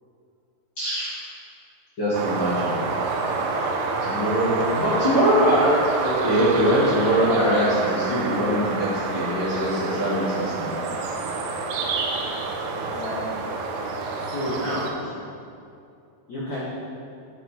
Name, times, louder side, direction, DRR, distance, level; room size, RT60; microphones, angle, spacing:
voice 1, 0.8-1.1 2.0-2.7 4.0-5.7 6.0-10.7, equal, 50° left, -12 dB, 1.5 m, -22 dB
sound 1, 2.1-14.9, right 3 dB, 90° right, 3.2 m, -28 dB
voice 2, 12.7-13.4 14.2-14.9 16.3-16.6, equal, 80° left, -8 dB, 1.6 m, -31 dB
9.9 x 6.1 x 4.4 m, 2.5 s
omnidirectional pair, 5.6 m